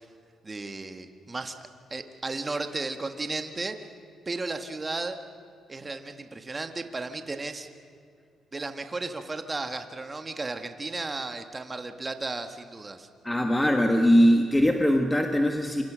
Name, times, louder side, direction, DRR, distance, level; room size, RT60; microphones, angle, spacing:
voice 1, 0.4-3.8 4.2-5.2 5.7-7.7 8.5-13.1, right 3 dB, 25° right, 7 dB, 1.6 m, -34 dB
voice 2, 13.2-15.8, equal, 10° left, 3 dB, 1.6 m, -21 dB
27.5 x 25.5 x 6.3 m, 2.2 s
cardioid pair, 90°, 0 cm